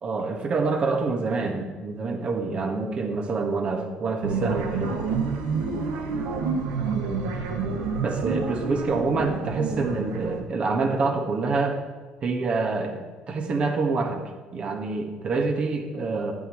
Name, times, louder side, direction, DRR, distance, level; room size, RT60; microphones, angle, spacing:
voice 1, 0.0-5.0 8.0-11.8 12.2-14.2 14.5-16.3, right 3 dB, 50° right, 3 dB, 1.6 m, -26 dB
sound 1, 4.2-10.4, right 5 dB, 85° right, 1.1 m, -28 dB
11.0 x 8.8 x 3.1 m, 1.4 s
supercardioid pair, 80°, 3 cm